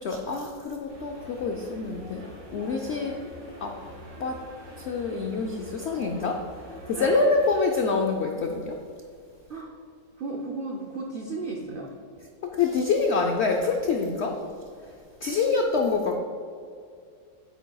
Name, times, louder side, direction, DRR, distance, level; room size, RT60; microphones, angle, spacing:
voice 1, 0.0-2.2 2.5-3.2 3.6-3.8 4.2-4.4 4.8-6.4 6.9-8.8 12.6-14.4 15.2-16.1, left 4 dB, 85° left, 2 dB, 0.6 m, -26 dB
sound 1, 0.9-7.7, equal, 60° right, 1.9 m, -45 dB
voice 2, 6.9-7.3 9.5-9.7 10.2-11.9, right 3 dB, 85° right, 0 dB, 0.4 m, -34 dB
8.8 x 8.1 x 2.3 m, 2.3 s
omnidirectional pair, 1.8 m